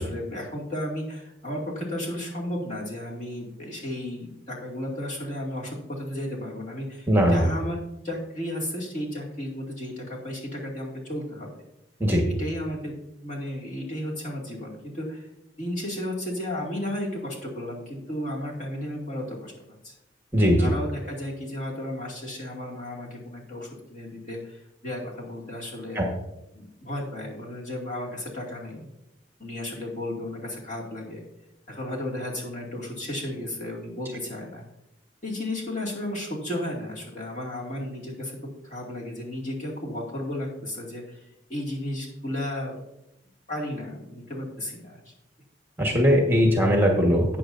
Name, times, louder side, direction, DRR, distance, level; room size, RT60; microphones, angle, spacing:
voice 1, 0.0-11.5 12.4-15.3 15.6-19.9 20.6-26.1 26.5-28.9 29.4-31.2 31.7-34.6 35.2-41.2 41.5-42.8 43.5-45.0, left 1 dB, 40° left, -3 dB, 2.3 m, -34 dB
voice 2, 7.1-7.4 12.0-12.2 20.3-20.7 25.9-26.1 45.8-47.2, equal, 10° right, 0 dB, 1.3 m, -20 dB
12.5 x 8.5 x 2.6 m, 0.86 s
head